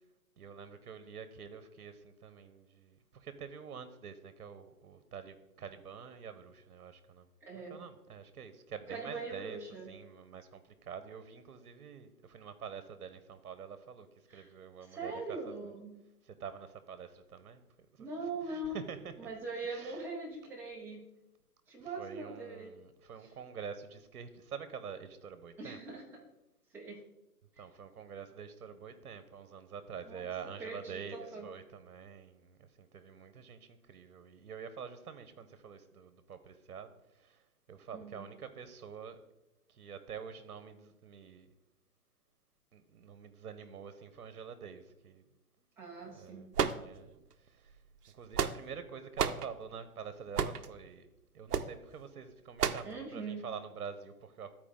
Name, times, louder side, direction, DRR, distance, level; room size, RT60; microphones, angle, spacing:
voice 1, 0.4-7.3 7.5-15.7 16.2-17.6 17.9-18.1 18.4-19.3 19.6-20.2 21.8-26.0 27.6-39.2 39.7-41.5 42.7-45.2 46.1-47.8 48.1-51.1 51.3-54.5, right 7 dB, 70° right, 1.0 m, -47 dB
voice 2, 7.4-7.8 8.9-9.9 14.3-14.5 14.9-15.9 18.0-18.8 19.2-21.0 21.7-22.7 25.6-26.0 26.7-27.0 30.1-30.3 30.6-31.5 37.9-38.3 45.8-46.5 52.8-53.4, right 3 dB, 5° right, 0.9 m, -41 dB
sound 1, 46.5-47.3 48.1-48.8 49.2-49.5 50.3-50.7 51.5-51.7 52.6-52.9, right 7 dB, 90° right, 0.7 m, -31 dB
12.5 x 4.7 x 3.7 m
hypercardioid pair, 145°, 46 cm